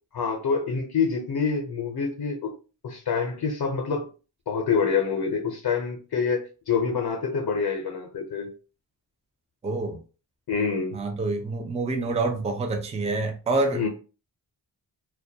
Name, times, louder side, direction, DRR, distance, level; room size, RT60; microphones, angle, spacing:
voice 1, 0.1-2.5 2.8-4.1 4.5-8.5 10.5-11.0 13.7-13.9, left 5 dB, 60° left, 0.6 m, -26 dB
voice 2, 9.6-10.0 10.9-13.9, right 3 dB, 15° right, 0.3 m, -27 dB
2.2 x 2.1 x 2.6 m
wide cardioid pair, 80°, 45 cm